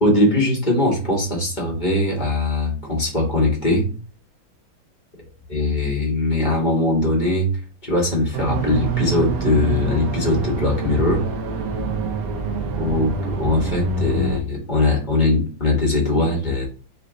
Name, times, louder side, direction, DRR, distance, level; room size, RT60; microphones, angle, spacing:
voice 1, 0.0-3.9 5.5-7.5 7.8-11.2 12.8-16.7, left 2 dB, 25° left, -2 dB, 1.2 m, -20 dB
sound 1, 8.3-14.4, right 4 dB, 60° right, 0.9 m, -25 dB
4.1 x 3.3 x 3.8 m, 0.39 s
omnidirectional pair, 2.2 m